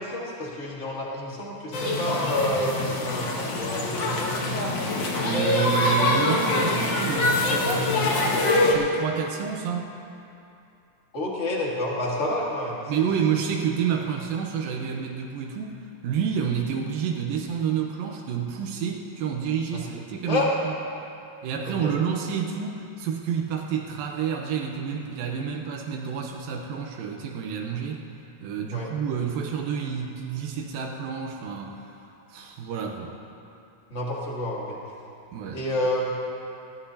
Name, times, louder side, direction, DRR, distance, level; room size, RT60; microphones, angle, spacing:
voice 1, 0.0-4.5 11.1-12.8 20.3-20.5 21.8-21.9 28.7-28.9 33.9-34.8 35.5-36.1, left 1 dB, 35° left, -4 dB, 1.1 m, -29 dB
sound 1, 1.7-8.7, left 2 dB, 65° left, 1.1 m, -24 dB
voice 2, 4.8-8.2 8.7-9.9 12.9-15.8 16.0-20.8 21.4-28.1 28.4-33.1 35.3-35.6, right 7 dB, 90° right, 1 dB, 2.6 m, -29 dB
20.0 x 15.0 x 2.8 m, 2.6 s
omnidirectional pair, 4.1 m